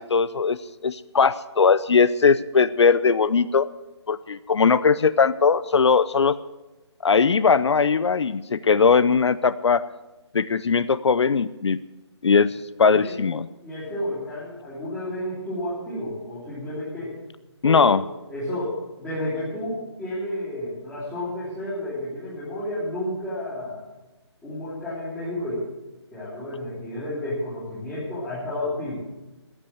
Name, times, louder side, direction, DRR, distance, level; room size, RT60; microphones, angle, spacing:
voice 1, 0.0-3.7 4.1-6.4 7.0-9.9 10.3-11.8 12.2-13.5 17.6-18.0, left 5 dB, 70° left, 16 dB, 0.5 m, -20 dB
voice 2, 13.6-17.1 17.6-18.0 18.3-23.8 24.4-25.7 26.1-28.9, left 1 dB, 5° left, -15 dB, 3.3 m, -31 dB
13.5 x 8.8 x 7.7 m, 1.1 s
hypercardioid pair, 170°, 15 cm